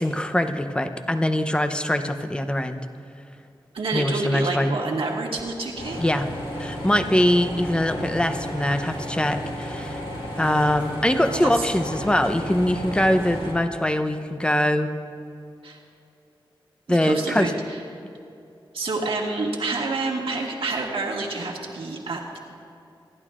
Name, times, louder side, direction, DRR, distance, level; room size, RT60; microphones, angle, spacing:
voice 1, 0.0-2.9 3.9-4.7 6.0-6.3 6.6-10.0 10.4-14.9 16.9-17.5, left 1 dB, 10° left, 7 dB, 0.7 m, -23 dB
voice 2, 3.7-6.1 11.3-11.7 15.6-15.8 16.9-17.8 18.7-22.4, right 3 dB, 90° right, -1 dB, 1.7 m, -28 dB
sound 1, 5.7-13.5, equal, 85° left, 2.7 m, -33 dB
26.5 x 11.0 x 2.5 m, 2.6 s
wide cardioid pair, 90°, 9 cm